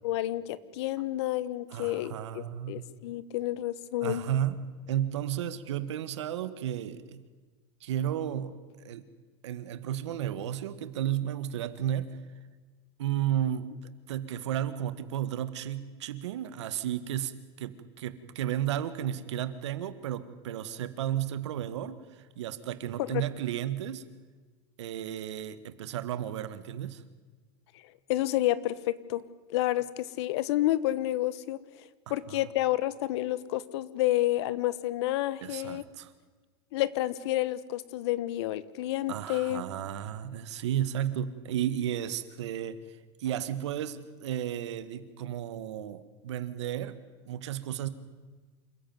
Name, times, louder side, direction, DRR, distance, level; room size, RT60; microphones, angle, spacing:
voice 1, 0.0-4.2 23.0-23.2 28.1-29.2 29.5-31.6 32.1-35.8 36.7-39.6, left 15 dB, 70° left, 18 dB, 1.2 m, -30 dB
voice 2, 1.7-2.8 4.0-4.6 4.9-7.2 7.8-9.0 9.4-12.2 13.0-24.0 24.8-27.0 32.1-32.4 35.4-36.1 39.1-42.8 43.2-47.0 47.3-47.9, right 11 dB, 85° right, 13 dB, 1.7 m, -33 dB
27.5 x 14.5 x 9.5 m, 1.4 s
supercardioid pair, 125°, 14 cm